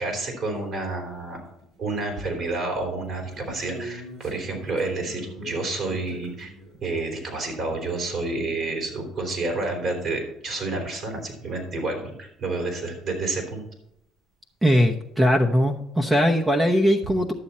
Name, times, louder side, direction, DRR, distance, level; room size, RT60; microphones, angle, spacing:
voice 1, 0.0-1.4 1.8-6.5 6.8-13.6, right 2 dB, 50° right, 2 dB, 3.9 m, -29 dB
sound 1, 0.6-0.7 1.0-2.1 2.5-6.8 9.4-9.5 9.7-9.8 10.8-10.9 11.5-11.6 15.2-15.3 15.5-15.9, equal, 80° right, 4.1 m, -43 dB
voice 2, 14.6-17.3, equal, 15° right, 2 dB, 0.9 m, -20 dB
11.5 x 7.1 x 4.3 m, 0.79 s
supercardioid pair, 95°, 0 cm